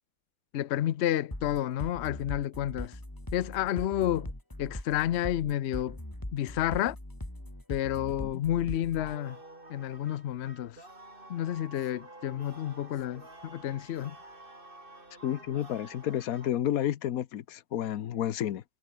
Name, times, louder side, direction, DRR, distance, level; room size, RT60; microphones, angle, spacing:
voice 1, 0.5-3.0 3.3-4.3 4.6-6.0 6.3-7.0 7.7-9.4 9.7-10.8 11.3-14.2, left 12 dB, 60° left, 0.8 m, -30 dB
sound 1, 1.3-9.1, left 1 dB, 15° left, 3.5 m, -40 dB
sound 2, 9.0-16.5, right 2 dB, 35° right, 4.6 m, -50 dB
voice 2, 15.2-18.6, left 11 dB, 75° left, 1.3 m, -31 dB
omnidirectional pair, 1.5 m